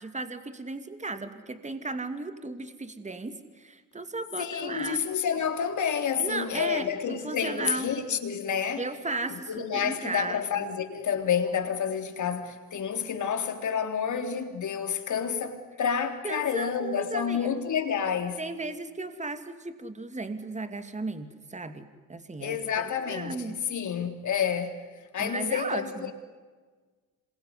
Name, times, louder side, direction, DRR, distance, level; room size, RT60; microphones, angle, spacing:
voice 1, 0.0-5.1 6.2-7.9 8.8-10.7 16.2-17.5 18.4-23.6 25.2-26.1, right 3 dB, 20° right, 2.5 m, -35 dB
voice 2, 4.4-8.8 9.3-18.4 22.4-24.8 25.1-26.1, left 7 dB, 55° left, 3.7 m, -29 dB
27.0 x 22.0 x 9.8 m
supercardioid pair, 70°, 35 cm